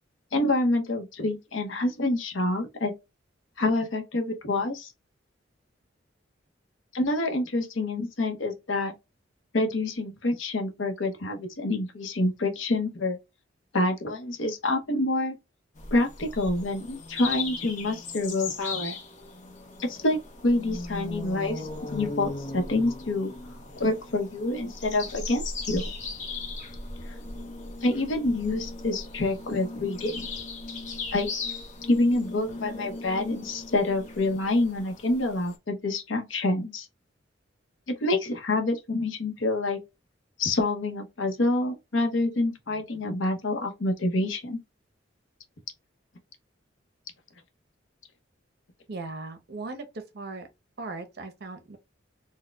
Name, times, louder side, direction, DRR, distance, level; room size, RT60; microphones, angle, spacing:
voice 1, 0.3-2.9 3.6-4.9 6.9-8.9 9.5-13.2 13.7-15.4 15.9-19.0 19.8-23.3 23.8-25.8 27.8-30.3 31.1-31.3 31.9-36.9 37.9-39.8 40.4-44.6, left 2 dB, 75° left, 0.8 m, -27 dB
sound 1, 15.8-35.6, left 3 dB, 40° left, 0.8 m, -38 dB
voice 2, 48.9-50.5 50.8-51.8, right 3 dB, 55° right, 0.8 m, -38 dB
4.0 x 2.2 x 2.2 m
head